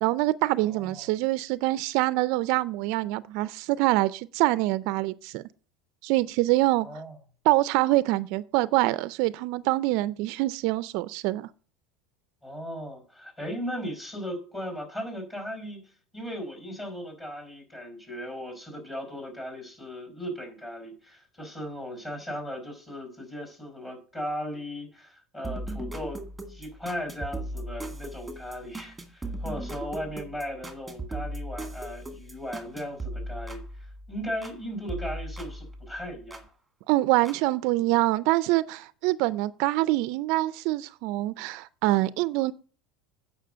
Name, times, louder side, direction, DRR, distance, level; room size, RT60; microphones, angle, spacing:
voice 1, 0.0-5.4 6.0-6.9 7.4-11.5 36.9-42.5, right 18 dB, 60° right, 0.4 m, -25 dB
voice 2, 0.6-1.1 6.8-7.1 12.4-26.2 26.5-36.4, equal, 15° left, 4.7 m, -37 dB
sound 1, 25.4-34.6 34.9-36.5 37.3-37.4, right 1 dB, 5° right, 2.0 m, -38 dB
9.2 x 5.7 x 7.8 m
supercardioid pair, 145°, 0 cm